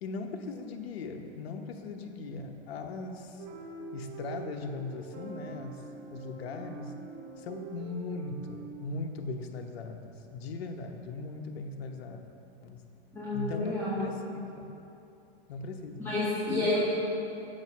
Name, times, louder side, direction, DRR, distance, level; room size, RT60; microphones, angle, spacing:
voice 1, 0.0-3.4 3.9-6.9 7.4-12.2 12.6-12.8 13.3-14.7 15.5-16.1, left 3 dB, 70° left, 4 dB, 0.9 m, -39 dB
sound 1, 3.4-8.7, right 5 dB, 50° right, 1.3 m, -44 dB
voice 2, 13.1-14.1 16.0-16.8, left 2 dB, 10° left, -12 dB, 1.6 m, -30 dB
6.5 x 6.5 x 6.1 m, 2.8 s
hypercardioid pair, 140°, 32 cm